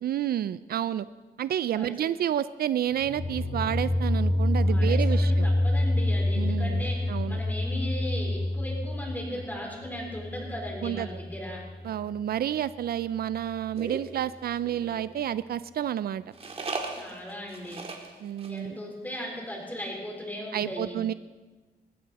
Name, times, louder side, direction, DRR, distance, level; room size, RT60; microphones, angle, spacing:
voice 1, 0.0-1.1 1.4-5.5 6.4-7.4 10.8-11.1 11.8-16.2 18.2-18.8 20.5-21.1, right 10 dB, 70° right, 16 dB, 0.4 m, -30 dB
sound 1, 2.9-11.9, left 1 dB, 45° left, 7.3 m, -27 dB
voice 2, 4.6-11.7 16.9-17.8 18.5-21.0, equal, 10° left, 0 dB, 4.0 m, -37 dB
sound 2, 13.8-15.1 16.3-18.1 18.4-18.6 18.9-19.0 19.2-19.6, right 3 dB, 40° right, 2.1 m, -37 dB
20.0 x 16.0 x 4.1 m, 1.2 s
wide cardioid pair, 140°, 16 cm